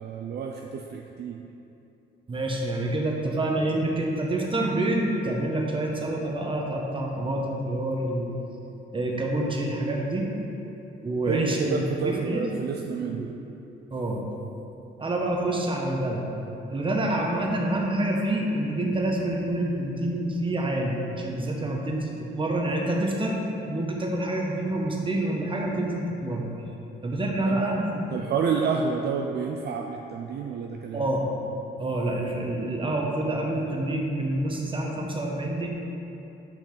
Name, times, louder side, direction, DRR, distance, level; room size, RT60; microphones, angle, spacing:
voice 1, 0.0-1.4 11.3-13.3 27.5-27.6 28.1-31.1, right 5 dB, 55° right, 2 dB, 0.4 m, -29 dB
voice 2, 2.3-8.3 8.9-10.3 11.0-12.5 13.0-13.3 13.9-14.2 15.0-16.2 16.7-23.4 23.6-26.5 27.0-28.3 30.9-31.4 31.8-35.7, right 1 dB, 25° right, -1 dB, 1.1 m, -27 dB
7.3 x 5.3 x 3.9 m, 2.9 s
cardioid pair, 90°, 20 cm